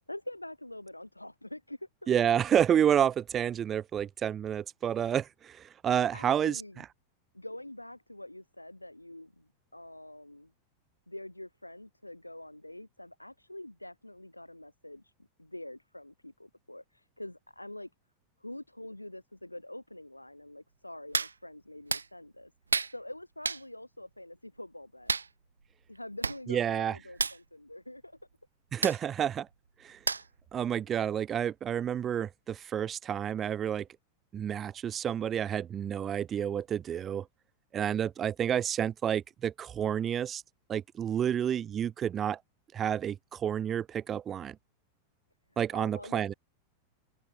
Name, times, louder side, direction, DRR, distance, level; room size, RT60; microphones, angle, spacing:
voice 1, 0.1-2.1 6.1-6.8 7.3-10.5 11.1-15.1 15.4-17.9 18.4-25.2 25.9-28.2 45.7-46.4, left 1 dB, 85° left, 3.7 m, -45 dB
voice 2, 2.1-6.6 26.5-26.9 28.7-29.5 29.8-30.0 30.5-33.9 34.3-37.3 37.7-40.4 40.7-42.4 42.7-44.5 45.6-46.3, right 9 dB, 25° right, 1.5 m, -29 dB
Hands, 21.1-21.3 21.9-22.1 22.7-22.9 23.4-23.6 25.1-25.3 25.9-26.0 26.2-26.4 26.7-26.8 27.1-27.4 28.8-29.0 30.1-30.4 30.8-30.9, right 4 dB, 75° right, 0.9 m, -30 dB
open air
figure-of-eight pair, 90°, 0 cm